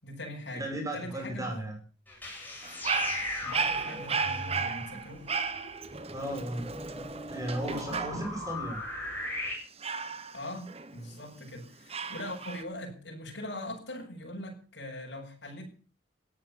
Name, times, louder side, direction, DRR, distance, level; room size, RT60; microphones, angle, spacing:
voice 1, 0.0-1.7 3.4-5.3 10.3-15.7, left 1 dB, 70° left, 0 dB, 7.5 m, -41 dB
voice 2, 0.5-1.8 6.1-6.7 7.3-8.8, right 1 dB, 20° right, 3 dB, 6.8 m, -35 dB
sound 1, 2.1-9.5, left 2 dB, 10° left, 7.8 m, -39 dB
Dog, 2.6-8.5 9.8-11.3 11.9-12.6, right 5 dB, 35° right, 1.3 m, -34 dB
17.5 x 11.0 x 7.2 m, 0.39 s
head